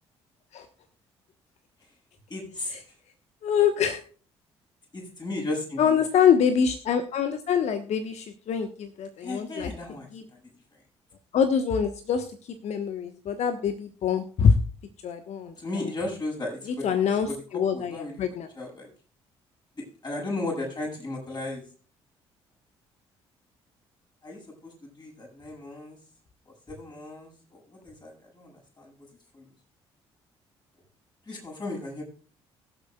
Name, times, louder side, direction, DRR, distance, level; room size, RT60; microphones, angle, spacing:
voice 1, 2.3-2.7 4.9-6.0 9.2-10.1 15.6-16.9 17.3-17.4 17.7-18.1 18.6-18.9 20.0-21.6 24.2-26.0 26.7-28.9 29.3-29.5 31.3-32.0, left 2 dB, 30° left, -1 dB, 7.1 m, -35 dB
voice 2, 3.4-4.0 5.8-9.7 10.1-10.3 11.3-14.5 15.0-15.9 16.7-18.5, left 7 dB, 55° left, 9 dB, 1.2 m, -25 dB
23.5 x 8.0 x 2.3 m, 0.39 s
figure-of-eight pair, 45°, 14 cm